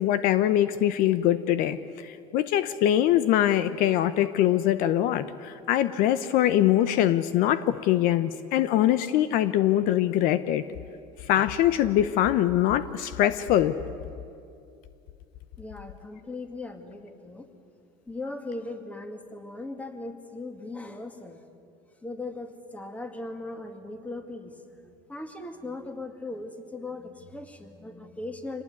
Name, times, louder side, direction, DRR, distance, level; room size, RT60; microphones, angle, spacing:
voice 1, 0.0-10.6 11.2-13.8, left 12 dB, 60° left, 14 dB, 0.8 m, -23 dB
voice 2, 15.6-17.5 18.1-21.4 22.0-28.6, left 2 dB, 10° left, 7 dB, 2.2 m, -38 dB
26.0 x 19.0 x 9.6 m, 2.5 s
supercardioid pair, 130°, 16 cm